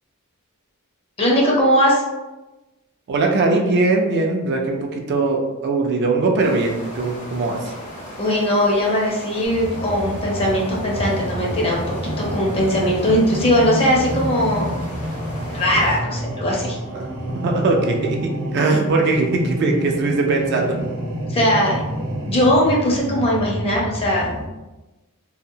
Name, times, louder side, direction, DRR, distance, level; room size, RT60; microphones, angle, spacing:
voice 1, 1.2-2.0 8.2-14.7 15.5-16.8 21.3-21.8 22.3-24.3, equal, 25° left, -3 dB, 0.6 m, -19 dB
voice 2, 3.1-7.7 16.9-17.1 17.4-18.2 18.5-20.8, right 3 dB, 50° right, 1 dB, 0.4 m, -20 dB
sound 1, 6.4-16.0, equal, 85° left, 1.1 m, -36 dB
sound 2, 9.4-24.4, equal, 75° right, 0.8 m, -28 dB
2.8 x 2.0 x 2.6 m, 1.1 s
head